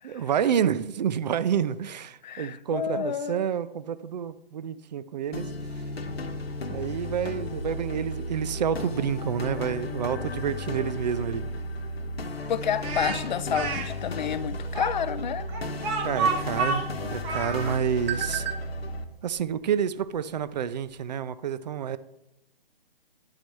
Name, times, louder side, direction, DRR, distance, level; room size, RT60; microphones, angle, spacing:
voice 1, 0.0-5.5 6.7-11.4 16.0-18.4 19.2-22.0, right 8 dB, 45° right, 14 dB, 0.5 m, -29 dB
voice 2, 2.2-3.5 12.5-15.5, left 8 dB, 50° left, 17 dB, 0.5 m, -30 dB
sound 1, 5.3-19.0, left 1 dB, 85° left, 1.1 m, -34 dB
Speech, 12.8-13.9 14.7-17.8, right 4 dB, 15° right, 0.9 m, -29 dB
sound 2, 17.9-21.1, right 9 dB, 80° right, 1.7 m, -40 dB
11.0 x 4.1 x 4.6 m, 0.86 s
hypercardioid pair, 145°, 30 cm